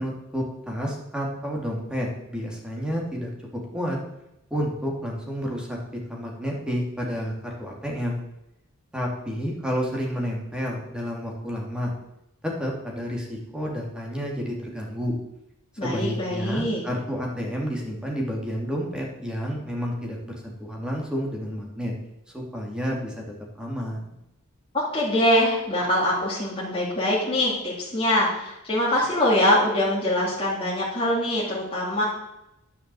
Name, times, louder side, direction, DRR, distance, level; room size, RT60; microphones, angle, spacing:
voice 1, 0.0-4.0 4.5-8.2 8.9-11.9 12.4-15.1 15.7-21.9 22.3-23.2 23.6-24.1, equal, 5° right, -1 dB, 2.8 m, -30 dB
voice 2, 15.8-16.8 24.7-32.0, left 1 dB, 25° left, -6 dB, 3.0 m, -23 dB
10.5 x 6.7 x 7.7 m, 0.87 s
head